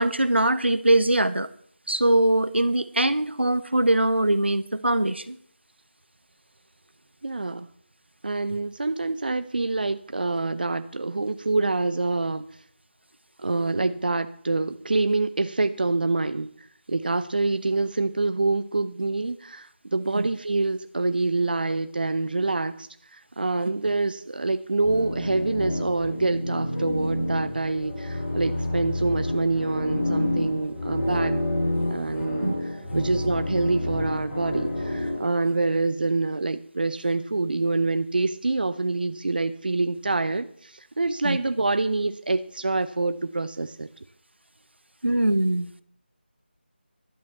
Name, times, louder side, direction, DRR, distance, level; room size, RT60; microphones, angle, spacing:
voice 1, 0.0-1.5 1.9-5.4 20.1-20.3 32.4-32.5 32.9-33.1 41.2-41.4 45.0-45.7, right 1 dB, 85° right, 13 dB, 1.1 m, -22 dB
voice 2, 7.2-7.7 8.2-12.5 13.4-31.4 31.9-43.9, right 3 dB, 55° right, 11 dB, 0.7 m, -26 dB
sound 1, 24.8-35.2, left 1 dB, 40° left, 5.7 m, -29 dB
12.0 x 8.3 x 6.8 m, 0.63 s
figure-of-eight pair, 165°, 6 cm